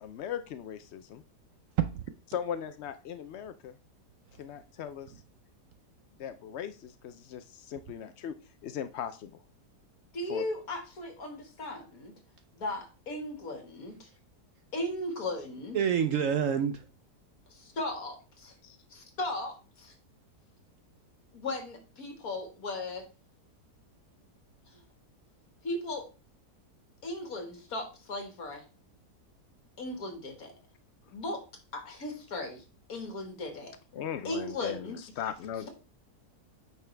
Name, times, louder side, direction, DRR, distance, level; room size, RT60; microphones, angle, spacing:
voice 1, 0.0-1.2 2.3-3.7 4.4-5.1 6.2-8.3 8.6-9.3 10.3-10.5 18.6-18.8 33.9-35.7, left 9 dB, 80° left, 0.6 m, -38 dB
voice 2, 10.1-12.1 12.5-14.1 14.7-15.8 17.5-18.5 18.9-19.9 21.3-23.0 25.6-26.1 27.0-28.6 29.8-30.5 31.1-31.4 31.7-32.6 32.9-33.7 34.2-35.0, left 2 dB, 60° left, 2.3 m, -37 dB
voice 3, 15.7-16.9, right 8 dB, 65° right, 0.8 m, -27 dB
9.1 x 6.1 x 3.3 m
omnidirectional pair, 1.8 m